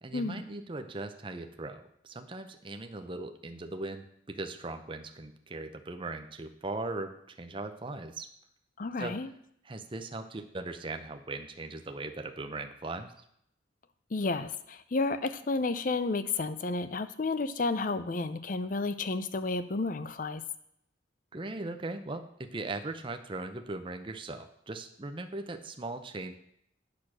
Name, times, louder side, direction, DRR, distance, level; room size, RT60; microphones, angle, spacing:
voice 1, 0.0-8.3 9.0-9.2 9.6-13.1 21.3-26.3, right 2 dB, 30° right, 6 dB, 0.7 m, -39 dB
voice 2, 8.8-9.3 14.1-20.4, left 3 dB, 45° left, 13 dB, 0.6 m, -31 dB
8.6 x 6.6 x 6.1 m, 0.72 s
head